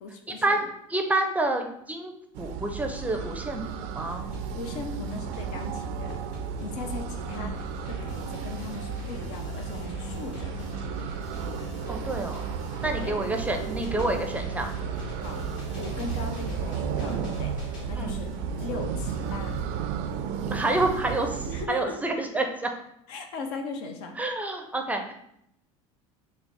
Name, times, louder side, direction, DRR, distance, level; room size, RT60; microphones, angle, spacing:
voice 1, 0.0-0.6 4.5-6.3 6.6-10.5 12.8-13.1 15.2-15.4 15.7-18.3 18.6-19.6 21.5-22.0 23.1-24.2, left 4 dB, 70° left, 5 dB, 0.6 m, -39 dB
voice 2, 0.9-2.1 2.4-4.3 7.4-7.6 11.9-12.4 12.8-14.7 18.0-18.2 20.5-22.7 24.2-25.1, right 2 dB, 10° right, 4 dB, 0.5 m, -28 dB
sound 1, 2.3-21.7, right 7 dB, 65° right, 0.4 m, -34 dB
sound 2, 4.1-19.6, equal, 55° left, 1.4 m, -39 dB
4.0 x 2.0 x 4.4 m, 0.74 s
supercardioid pair, 100°, 15 cm